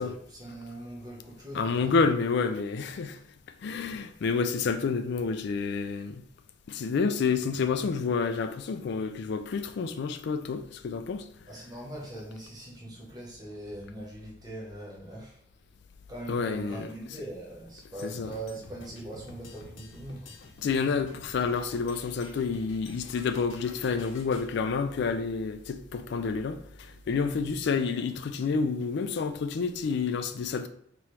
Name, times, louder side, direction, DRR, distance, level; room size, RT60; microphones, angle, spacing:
voice 1, 0.0-2.0 11.5-15.4 16.1-20.4 27.1-27.4, right 1 dB, 20° right, 0.8 m, -41 dB
voice 2, 1.5-3.2 3.6-6.2 6.7-11.3 16.3-16.9 18.0-18.3 20.6-30.7, left 5 dB, 60° left, 0.3 m, -29 dB
sound 1, 18.0-24.5, left 2 dB, 80° left, 0.8 m, -49 dB
sound 2, 21.4-27.7, right 1 dB, 55° right, 1.4 m, -53 dB
4.7 x 3.0 x 2.9 m
head